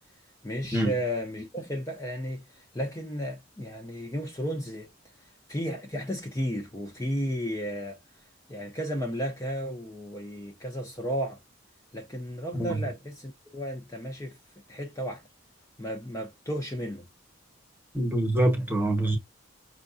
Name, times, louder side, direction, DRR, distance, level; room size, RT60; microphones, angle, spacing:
voice 1, 0.4-4.9 5.5-8.0 8.5-11.4 11.9-14.4 14.7-15.2 15.8-17.1, equal, 15° left, 0.7 m, -33 dB
voice 2, 17.9-19.2, right 1 dB, 10° right, 1.1 m, -25 dB
5.8 x 2.4 x 2.6 m
head